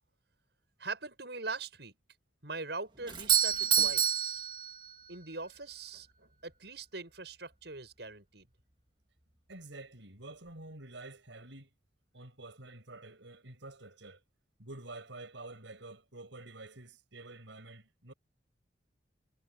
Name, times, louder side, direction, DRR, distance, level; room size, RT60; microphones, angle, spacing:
voice 1, 0.8-1.9 2.4-4.5 5.1-8.5, right 3 dB, 65° right, 6.8 m, -42 dB
Doorbell, 3.1-5.2, right 8 dB, 25° right, 1.5 m, -28 dB
voice 2, 9.5-11.7 12.1-14.2 14.6-18.1, right 2 dB, 90° right, 7.1 m, -48 dB
head